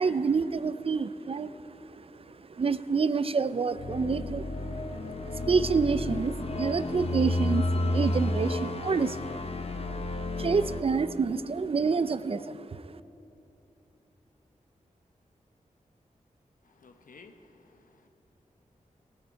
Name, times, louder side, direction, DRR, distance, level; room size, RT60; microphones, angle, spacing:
voice 1, 0.0-2.0 2.5-4.5 4.8-9.4 9.8-10.0 10.4-12.7, right 5 dB, 45° right, 14 dB, 0.4 m, -28 dB
sound 1, 3.8-10.8, left 2 dB, 45° left, 0.9 m, -31 dB
voice 2, 16.6-18.1, left 4 dB, 80° left, 6 dB, 0.9 m, -55 dB
18.0 x 9.2 x 4.7 m, 2.9 s
wide cardioid pair, 75°, 14 cm